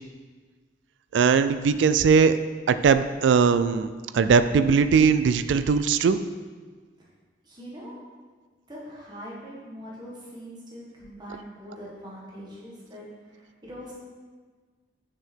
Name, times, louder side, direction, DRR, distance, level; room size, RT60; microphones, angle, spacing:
voice 1, 1.1-2.3 2.7-6.2, right 5 dB, 70° right, 11 dB, 0.3 m, -20 dB
voice 2, 7.4-7.9 8.7-13.9, equal, 25° right, -6 dB, 1.6 m, -42 dB
6.8 x 6.3 x 4.5 m, 1.5 s
head